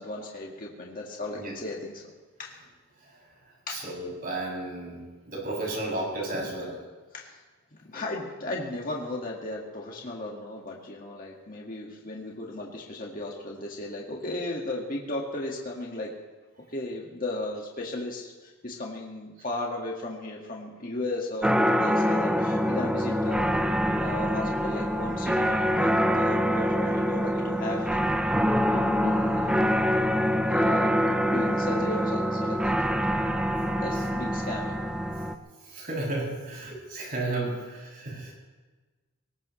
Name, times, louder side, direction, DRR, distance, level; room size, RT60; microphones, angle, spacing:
voice 1, 0.0-2.0 2.4-2.7 3.7-3.8 7.1-7.4 7.8-16.1 16.7-23.6 24.0-28.1 28.7-29.5 30.4-33.3 33.8-34.9, left 2 dB, 40° left, -2 dB, 1.8 m, -35 dB
voice 2, 3.7-6.8 35.6-38.3, right 2 dB, 40° right, -3 dB, 7.0 m, -33 dB
sound 1, 21.4-35.4, equal, 5° right, 0.6 m, -25 dB
22.0 x 19.5 x 3.2 m, 1.3 s
head